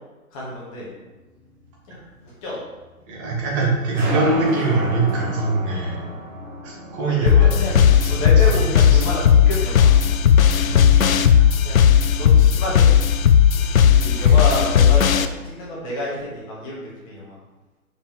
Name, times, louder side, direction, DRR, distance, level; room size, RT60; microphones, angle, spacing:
voice 1, 0.3-0.9 1.9-2.0 2.4-2.5 7.0-7.8 8.1-10.2 11.6-11.8 12.1-12.9 14.0-17.4, left 1 dB, 25° left, -6 dB, 1.8 m, -29 dB
sound 1, 1.0-15.0, right 2 dB, 60° right, 1.7 m, -36 dB
voice 2, 3.1-6.0 6.6-9.0 10.7-11.0 13.5-13.8, right 3 dB, 20° right, -3 dB, 1.4 m, -24 dB
sound 2, 7.3-15.3, left 8 dB, 70° left, 0.5 m, -15 dB
5.4 x 4.9 x 3.6 m, 1.2 s
figure-of-eight pair, 140°, 43 cm